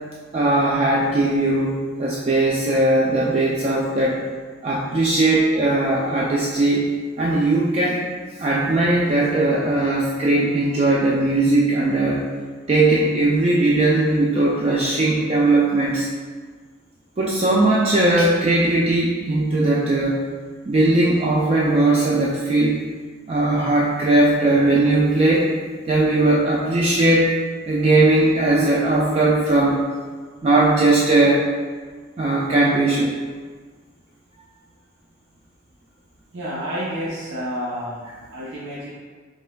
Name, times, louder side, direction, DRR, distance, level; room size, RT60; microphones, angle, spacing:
voice 1, 0.3-4.2 4.6-6.8 7.2-8.0 8.4-12.2 12.7-16.1 17.2-20.2 20.7-22.8 23.3-25.5 25.9-27.3 27.7-29.8 30.4-31.5 32.2-33.1, right 2 dB, 30° right, -4 dB, 0.3 m, -19 dB
voice 2, 36.3-38.9, equal, 65° right, -8 dB, 0.7 m, -30 dB
5.4 x 3.3 x 2.2 m, 1.5 s
head